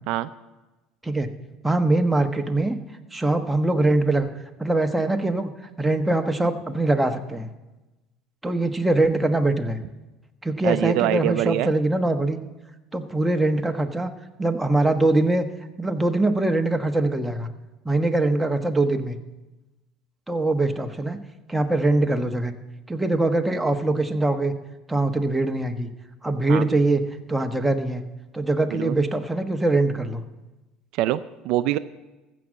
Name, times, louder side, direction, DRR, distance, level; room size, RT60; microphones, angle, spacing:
voice 1, 1.6-2.8 3.1-4.3 4.6-5.5 5.8-7.5 8.4-9.8 10.4-12.4 12.9-14.1 14.4-15.4 15.8-17.5 17.8-19.2 20.3-21.2 21.5-22.5 22.9-24.5 24.9-25.9 26.2-27.0 27.3-28.0 28.3-30.2, right 2 dB, 5° right, 5 dB, 1.1 m, -22 dB
voice 2, 10.6-11.7 26.5-26.6 28.7-29.0 30.9-31.8, right 14 dB, 70° right, 13 dB, 0.4 m, -24 dB
15.0 x 6.2 x 7.3 m, 1.1 s
supercardioid pair, 90°, 0 cm